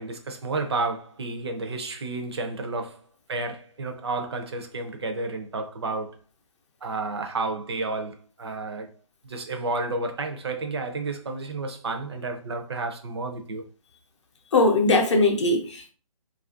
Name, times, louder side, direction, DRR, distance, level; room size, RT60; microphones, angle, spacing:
voice 1, 0.0-3.0 3.3-6.2 6.8-8.9 9.2-13.6, right 3 dB, 45° right, 0.4 m, -31 dB
voice 2, 14.5-15.9, left 2 dB, 55° left, 0.6 m, -20 dB
2.4 x 2.1 x 2.4 m
hypercardioid pair, 155°, 18 cm